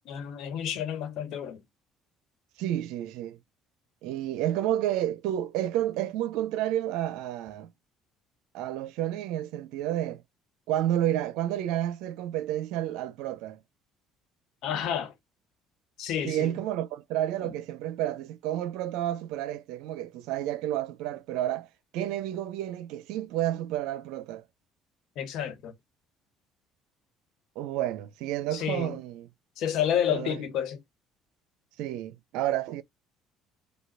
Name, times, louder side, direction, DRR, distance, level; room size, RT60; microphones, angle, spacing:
voice 1, 0.0-1.6 14.6-15.1 16.0-16.5 17.4-17.5 25.2-25.7 28.5-29.0 29.6-30.8, left 9 dB, 70° left, 1.3 m, -30 dB
voice 2, 2.6-3.4 4.0-7.7 8.5-10.2 10.7-13.6 16.2-21.7 21.9-24.4 27.6-29.3 30.1-30.4 31.8-32.8, right 12 dB, 80° right, 0.5 m, -30 dB
5.0 x 2.3 x 4.6 m
supercardioid pair, 75°, 0 cm